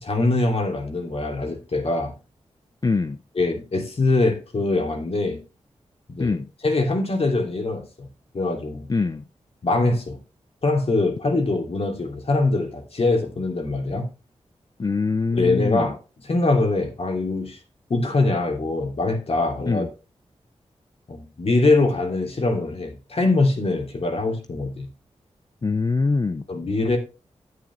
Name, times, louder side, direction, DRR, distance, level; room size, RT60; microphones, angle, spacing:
voice 1, 0.0-2.1 3.3-5.4 6.1-6.4 6.6-8.1 8.3-8.9 9.6-10.2 10.6-14.1 15.3-16.0 16.2-17.6 17.9-19.9 21.1-24.9 26.5-27.0, left 2 dB, 55° left, 2.9 m, -23 dB
voice 2, 2.8-3.2 6.2-6.5 8.9-9.2 14.8-15.9 19.7-19.9 25.6-26.4, left 4 dB, 35° left, 0.5 m, -23 dB
9.5 x 8.7 x 3.1 m
cardioid pair, 65°, 12 cm